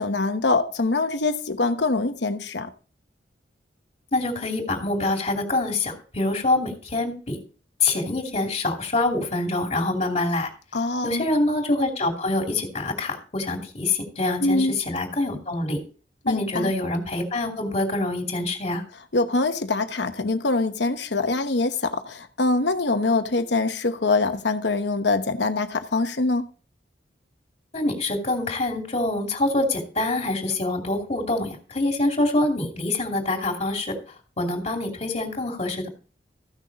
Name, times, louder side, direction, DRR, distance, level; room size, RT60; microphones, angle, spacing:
voice 1, 0.0-2.7 10.7-11.3 14.4-14.8 16.2-16.7 19.1-26.5, left 3 dB, 70° left, 1.0 m, -24 dB
voice 2, 4.1-7.4 7.8-10.5 11.0-15.8 16.3-18.8 27.7-34.0 34.4-35.9, left 2 dB, 40° left, 2.8 m, -25 dB
14.5 x 6.4 x 4.0 m
head